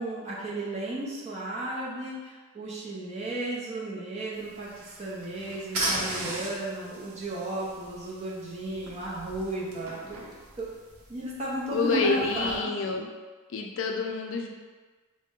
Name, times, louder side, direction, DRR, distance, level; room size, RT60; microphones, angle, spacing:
voice 1, 0.0-10.2 10.6-10.7 11.1-12.7, right 1 dB, 30° right, -6 dB, 0.7 m, -34 dB
sound 1, 4.3-12.6, right 2 dB, 80° right, 0.7 m, -38 dB
voice 2, 11.7-13.1 13.5-14.5, left 4 dB, 60° left, 2 dB, 0.4 m, -28 dB
3.6 x 2.1 x 3.6 m, 1.4 s
head